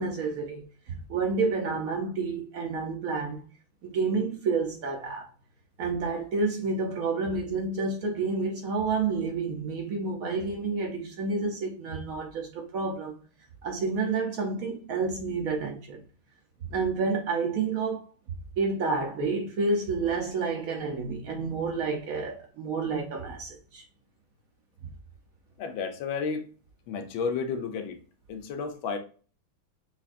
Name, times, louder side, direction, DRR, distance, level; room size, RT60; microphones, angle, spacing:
voice 1, 0.0-3.4 3.8-5.3 5.8-13.2 13.6-16.0 16.7-18.0 18.6-23.8, right 4 dB, 75° right, 0.7 m, -29 dB
voice 2, 25.6-26.4 26.9-28.0 28.3-29.0, left 5 dB, 75° left, 1.5 m, -32 dB
6.8 x 2.4 x 2.5 m
omnidirectional pair, 2.3 m